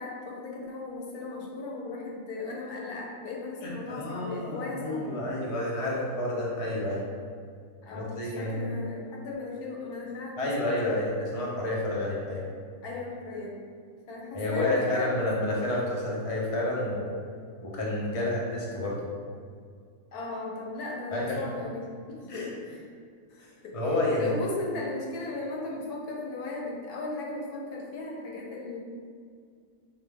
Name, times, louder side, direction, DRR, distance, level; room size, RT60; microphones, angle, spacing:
voice 1, 0.0-5.2 7.8-11.0 12.8-13.5 14.1-15.2 18.1-18.4 20.1-22.8 23.3-28.8, left 3 dB, 70° left, -2 dB, 1.2 m, -37 dB
voice 2, 3.6-7.0 7.9-8.8 10.4-12.4 14.3-17.2 17.6-19.0 21.1-21.4 22.3-22.5 23.7-24.3, left 1 dB, 40° left, -4 dB, 0.5 m, -29 dB
5.1 x 2.4 x 3.4 m, 2.1 s
omnidirectional pair, 1.7 m